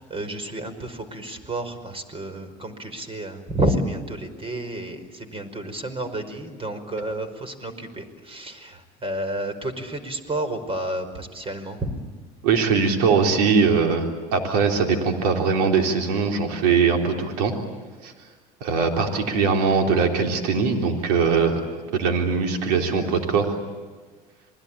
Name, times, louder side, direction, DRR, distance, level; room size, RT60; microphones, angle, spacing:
voice 1, 0.0-11.9, right 1 dB, 30° right, 10 dB, 5.2 m, -30 dB
voice 2, 12.4-14.1 14.3-17.5 18.0-18.1 18.6-21.6 21.9-23.5, right 5 dB, 80° right, 3 dB, 3.8 m, -21 dB
27.5 x 21.0 x 8.9 m, 1.4 s
hypercardioid pair, 80°, 20 cm